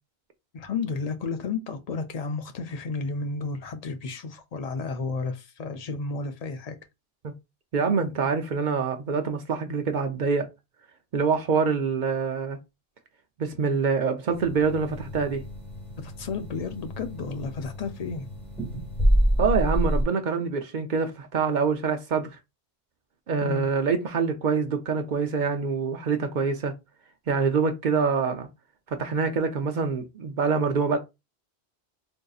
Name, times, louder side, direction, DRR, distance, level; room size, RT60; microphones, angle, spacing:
voice 1, 0.5-6.8 16.0-18.3 23.4-23.7, left 4 dB, 55° left, 0.4 m, -32 dB
voice 2, 7.7-10.5 11.1-12.6 13.4-15.4 19.4-22.3 23.3-26.7 27.3-28.5 28.9-31.0, right 5 dB, 55° right, 0.6 m, -25 dB
sound 1, 14.3-20.0, equal, ahead, 1.4 m, -28 dB
3.8 x 2.6 x 2.3 m
omnidirectional pair, 1.1 m